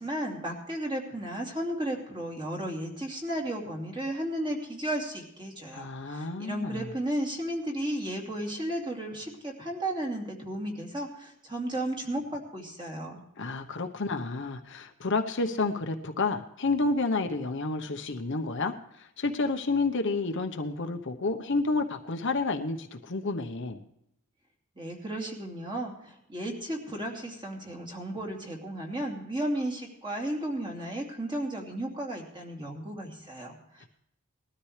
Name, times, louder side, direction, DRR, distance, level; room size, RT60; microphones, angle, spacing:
voice 1, 0.0-13.2 24.8-33.9, right 1 dB, 20° right, 0 dB, 2.6 m, -34 dB
voice 2, 5.7-6.9 13.4-23.8, left 3 dB, 55° left, 5 dB, 1.0 m, -30 dB
20.0 x 13.0 x 3.3 m, 0.78 s
head